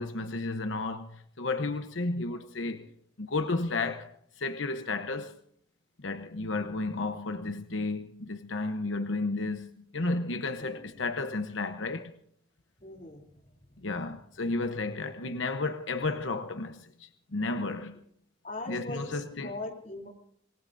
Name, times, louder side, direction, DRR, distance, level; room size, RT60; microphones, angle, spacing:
voice 1, 0.0-2.9 3.2-5.4 6.0-12.1 13.8-18.0 18.7-19.5, left 3 dB, 85° left, 1.0 m, -33 dB
voice 2, 2.3-2.9 10.5-10.9 12.8-13.8 18.4-20.1, left 2 dB, 40° left, 3.3 m, -42 dB
26.5 x 20.0 x 2.7 m
head